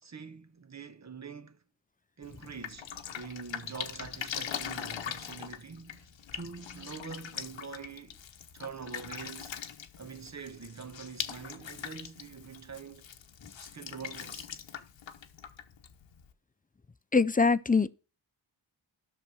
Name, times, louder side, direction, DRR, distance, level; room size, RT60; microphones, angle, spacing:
voice 1, 0.0-1.6 2.2-8.2 8.5-9.6 10.0-13.1 13.6-14.5, right 5 dB, 35° right, 1.1 m, -45 dB
Drip, 2.2-16.3, left 8 dB, 75° left, 1.1 m, -42 dB
voice 2, 17.1-17.9, left 4 dB, 20° left, 0.5 m, -23 dB
12.5 x 6.0 x 6.3 m
cardioid pair, 55°, 46 cm